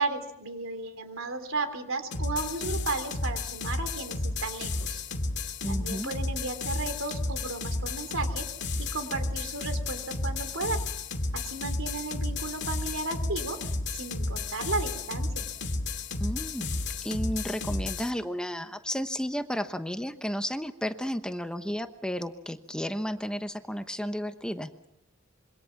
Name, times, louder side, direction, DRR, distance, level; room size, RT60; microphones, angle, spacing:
voice 1, 0.0-5.0 5.7-8.5 8.9-10.8 11.3-13.6 13.9-15.5, right 3 dB, 85° right, 8 dB, 3.5 m, -34 dB
sound 1, 2.1-18.1, left 2 dB, 60° left, 2.4 m, -32 dB
voice 2, 5.6-6.1 16.2-24.7, equal, 5° left, 8 dB, 1.0 m, -33 dB
26.5 x 24.0 x 6.0 m, 0.86 s
head